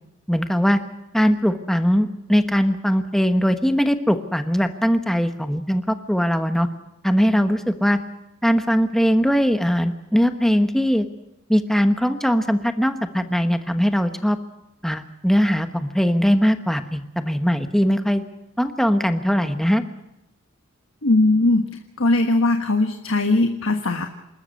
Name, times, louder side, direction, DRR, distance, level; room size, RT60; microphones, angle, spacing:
voice 1, 0.3-0.8 1.1-6.7 7.0-8.0 8.4-11.1 11.5-14.4 14.8-18.2 18.6-19.8, equal, ahead, 8 dB, 1.1 m, -20 dB
voice 2, 21.0-21.7 22.0-24.1, left 2 dB, 70° left, 5 dB, 1.4 m, -19 dB
27.5 x 13.0 x 8.4 m, 0.91 s
head